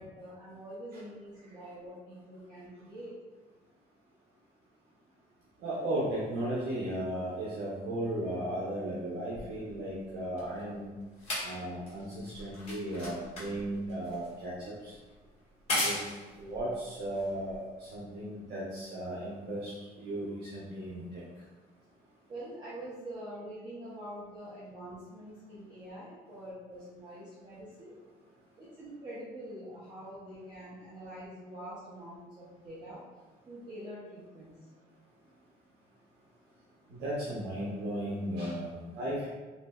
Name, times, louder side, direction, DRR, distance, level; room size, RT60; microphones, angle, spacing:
voice 1, 0.0-3.1 22.3-27.9 28.6-33.0 33.5-34.7, right 1 dB, 25° right, -9 dB, 0.6 m, -45 dB
voice 2, 5.6-10.9 11.4-15.0 15.7-16.0 16.4-21.2 36.9-39.3, right 1 dB, 75° right, -7 dB, 0.7 m, -36 dB
sound 1, 9.3-18.0 18.8-18.9, left 1 dB, 40° left, 1.4 m, -38 dB
3.1 x 2.7 x 2.3 m, 1.3 s
cardioid pair, 165°, 17 cm